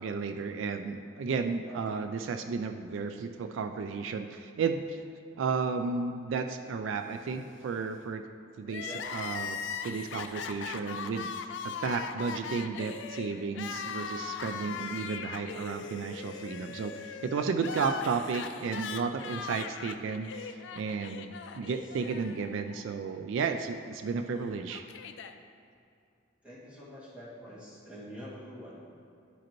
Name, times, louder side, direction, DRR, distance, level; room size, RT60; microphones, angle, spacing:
voice 1, 0.0-5.0 5.4-8.2 8.6-11.3 11.6-24.8, right 5 dB, 75° right, 7 dB, 0.3 m, -33 dB
Crying sobbing, 8.7-22.8 23.1-23.2 24.2-25.3, left 6 dB, 70° left, 0.4 m, -40 dB
voice 2, 26.4-28.8, equal, 5° right, -9 dB, 1.9 m, -46 dB
11.0 x 5.0 x 3.0 m, 2.5 s
head